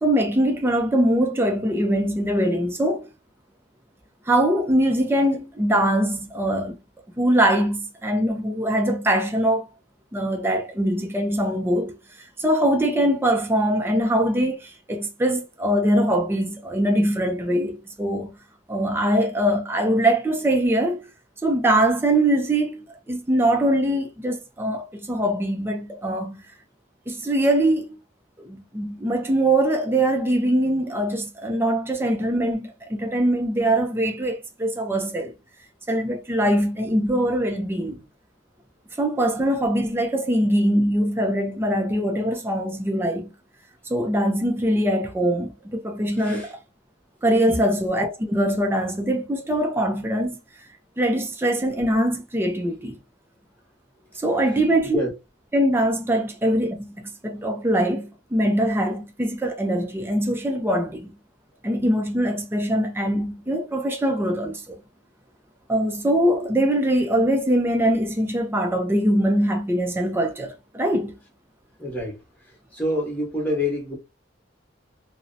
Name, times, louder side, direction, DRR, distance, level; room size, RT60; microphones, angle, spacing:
voice 1, 0.0-3.1 4.3-6.8 7.2-9.7 10.1-12.0 12.4-18.3 18.7-21.1 21.4-26.4 27.1-28.0 28.4-35.3 35.9-38.0 39.0-43.3 43.9-46.6 47.2-50.4 51.0-53.0 54.2-55.0 55.5-61.1 61.6-64.8 65.7-71.2, right 1 dB, 10° right, 0.4 m, -22 dB
voice 2, 46.2-46.5 47.5-47.6 54.9-55.1 71.8-72.2 72.7-74.0, left 1 dB, 10° left, 1.1 m, -26 dB
2.7 x 2.0 x 2.5 m
head